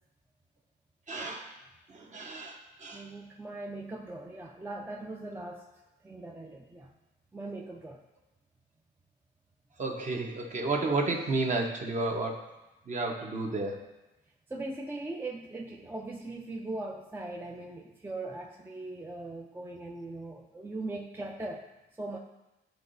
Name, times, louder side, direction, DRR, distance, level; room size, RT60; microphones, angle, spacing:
voice 1, 1.1-1.5 1.9-3.1 9.8-12.4 12.9-13.8, right 3 dB, 35° right, 1 dB, 1.0 m, -32 dB
voice 2, 2.9-5.7 6.0-6.9 7.3-8.0 14.5-21.6 22.0-22.2, right 2 dB, 10° right, 0 dB, 0.5 m, -40 dB
10.5 x 3.9 x 2.6 m, 1.0 s
cardioid pair, 90°, 20 cm